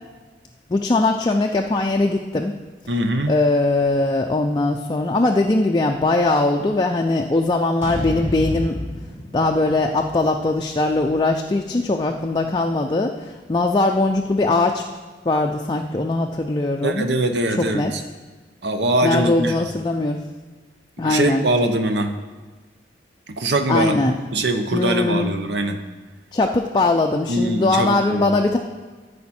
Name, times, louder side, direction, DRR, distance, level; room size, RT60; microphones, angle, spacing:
voice 1, 0.7-2.6 3.3-8.8 9.3-14.8 15.2-17.1 17.6-17.9 19.0-20.2 21.0-21.4 23.7-24.2 24.7-25.3 26.3-28.6, left 2 dB, 25° left, 2 dB, 0.4 m, -20 dB
voice 2, 2.9-3.3 16.8-18.0 18.6-19.6 21.0-22.1 23.3-25.8 27.3-28.3, right 1 dB, 70° right, 7 dB, 0.8 m, -22 dB
sound 1, 7.8-12.0, left 1 dB, 15° right, 3.3 m, -32 dB
14.0 x 5.0 x 4.3 m, 1.4 s
head